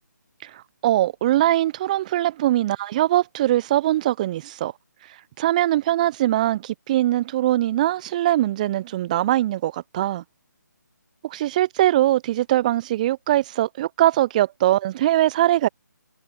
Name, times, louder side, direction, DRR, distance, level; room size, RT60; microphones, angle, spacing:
voice 1, 0.4-4.7 5.4-10.2 11.2-15.7, right 14 dB, 25° right, 0.9 m, -21 dB
figure-of-eight pair, 150°, 10 cm